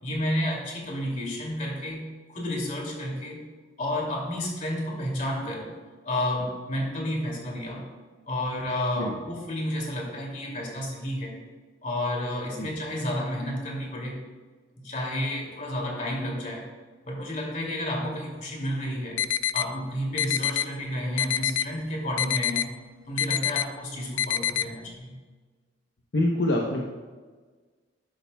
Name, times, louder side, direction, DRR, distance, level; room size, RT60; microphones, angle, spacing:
voice 1, 0.0-3.5 3.8-5.7 6.0-7.8 8.2-11.4 11.8-14.2 14.7-16.6 17.0-19.2 19.5-22.7 23.1-25.1, left 1 dB, 40° left, -1 dB, 2.5 m, -31 dB
sound 1, 19.2-19.7 20.2-20.7 21.2-21.7 22.2-22.7 23.2-23.7 24.2-24.7, left 10 dB, 80° left, 0.4 m, -26 dB
voice 2, 26.1-26.8, left 1 dB, 65° left, -1 dB, 0.9 m, -25 dB
11.5 x 11.5 x 2.3 m, 1.4 s
head